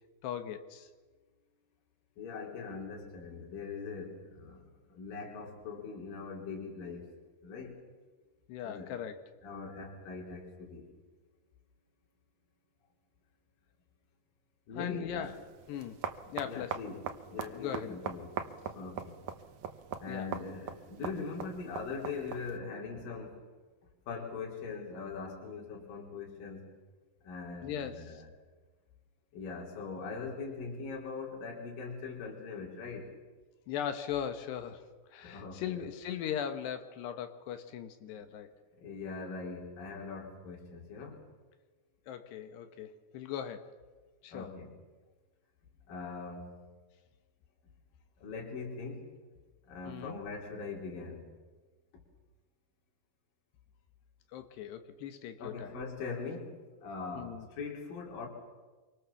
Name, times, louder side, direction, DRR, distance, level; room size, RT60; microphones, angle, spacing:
voice 1, 0.2-0.9 8.5-9.2 14.7-15.4 15.7-16.0 16.3-16.8 17.5-18.0 20.1-20.3 27.6-28.2 33.7-34.8 35.1-38.5 42.1-43.7 44.2-44.5 49.9-50.2 54.3-55.8 57.2-57.5, left 9 dB, 75° left, 9 dB, 3.4 m, -39 dB
voice 2, 2.2-4.6 4.9-7.1 7.4-7.8 8.6-8.9 9.4-10.9 14.7-15.3 16.4-17.0 17.3-18.3 18.7-19.2 20.0-23.3 24.1-26.7 27.2-28.3 29.3-33.1 35.2-35.9 38.1-38.2 38.8-41.2 44.3-44.7 45.9-46.6 48.2-49.1 49.7-51.3 55.4-58.3, left 4 dB, 55° left, -1 dB, 5.0 m, -41 dB
sound 1, 15.2-22.6, right 8 dB, 65° right, 2.0 m, -42 dB
27.0 x 24.0 x 7.2 m, 1.3 s
omnidirectional pair, 4.9 m